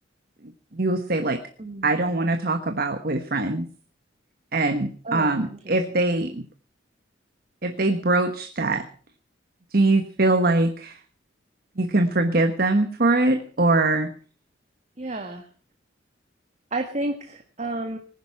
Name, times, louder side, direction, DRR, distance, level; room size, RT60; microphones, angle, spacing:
voice 1, 0.7-1.4 1.8-3.7 4.5-6.4 7.6-8.8 9.7-11.0 11.8-14.1, right 2 dB, 55° right, 8 dB, 1.2 m, -22 dB
voice 2, 1.6-2.0 5.0-5.7 15.0-15.5 16.7-18.0, right 2 dB, 40° right, 5 dB, 1.5 m, -31 dB
19.5 x 10.5 x 5.8 m, 0.40 s
head